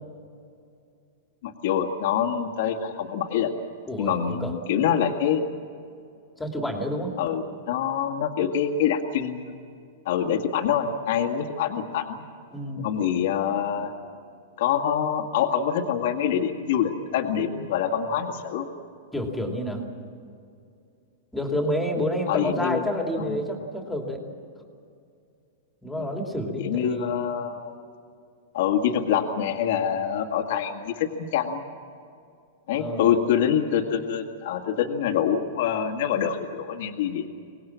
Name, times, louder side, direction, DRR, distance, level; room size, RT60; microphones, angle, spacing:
voice 1, 1.4-3.5 4.0-5.4 7.2-9.6 10.1-12.3 12.8-13.9 14.6-18.7 22.3-22.8 23.2-23.4 26.0-26.1 26.6-27.7 28.5-31.6 32.7-37.3, left 8 dB, 60° left, 4 dB, 2.0 m, -25 dB
voice 2, 3.9-4.5 6.4-7.2 12.5-12.9 19.1-19.8 21.3-24.2 25.8-27.1 32.8-33.2, equal, 5° left, 2 dB, 2.7 m, -29 dB
25.0 x 19.5 x 7.5 m, 2.4 s
supercardioid pair, 150°, 0 cm